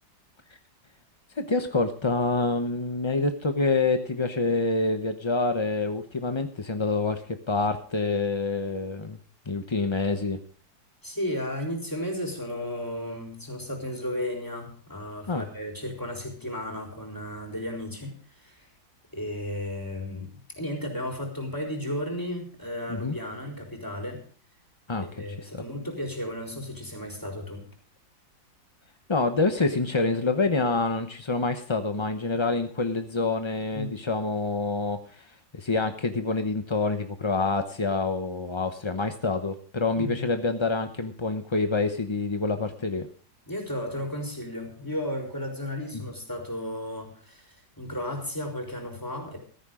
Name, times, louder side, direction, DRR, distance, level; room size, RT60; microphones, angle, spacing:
voice 1, 1.4-9.2 9.5-10.4 15.3-15.4 22.9-23.1 24.9-25.6 29.1-35.2 35.5-43.1, left 3 dB, 40° left, 7 dB, 0.4 m, -27 dB
voice 2, 11.0-18.7 19.1-24.2 25.0-27.7 33.7-34.0 40.0-40.3 43.5-49.4, left 1 dB, 10° left, 1 dB, 3.9 m, -34 dB
15.0 x 14.0 x 3.7 m, 0.44 s
omnidirectional pair, 2.0 m